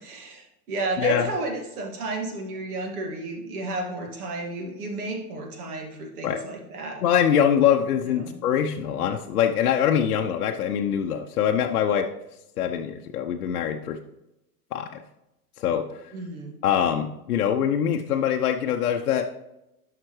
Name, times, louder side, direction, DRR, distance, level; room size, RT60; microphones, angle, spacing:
voice 1, 0.0-7.0 8.1-8.3 16.1-16.6, right 2 dB, 65° right, 2 dB, 2.1 m, -32 dB
voice 2, 1.0-1.3 6.2-6.4 7.0-12.1 12.6-14.0 14.7-14.9 15.6-16.1 16.6-19.2, left 9 dB, 65° left, 3 dB, 0.7 m, -23 dB
11.0 x 5.9 x 3.1 m, 0.91 s
figure-of-eight pair, 90°, 48 cm